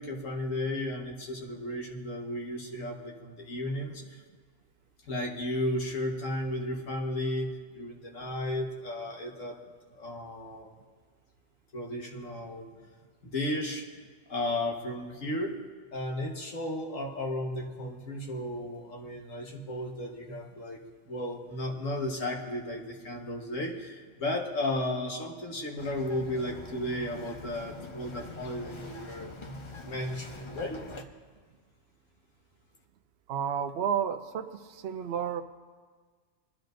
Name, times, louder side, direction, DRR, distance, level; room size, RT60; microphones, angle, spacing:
voice 1, 0.0-4.2 5.0-9.6 9.9-10.7 11.7-12.7 13.2-13.9 14.3-15.6 15.9-20.8 21.1-29.3 29.8-30.8, left 1 dB, 75° left, 1 dB, 1.7 m, -34 dB
Bird vocalization bird call bird song, 25.8-31.0, left 2 dB, 30° left, 0.5 m, -44 dB
voice 2, 33.3-34.4 34.7-35.4, right 8 dB, 60° right, 8 dB, 0.8 m, -31 dB
22.0 x 10.5 x 2.6 m, 1.5 s
omnidirectional pair, 1.3 m